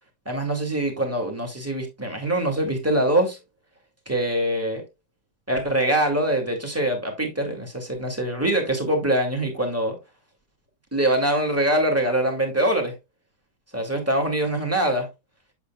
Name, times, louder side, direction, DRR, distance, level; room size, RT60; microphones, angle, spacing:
voice 1, 0.3-3.4 4.1-4.8 5.5-10.0 10.9-12.9 13.7-15.1, right 1 dB, 10° right, 2.3 m, -23 dB
8.5 x 7.2 x 2.3 m
omnidirectional pair, 1.8 m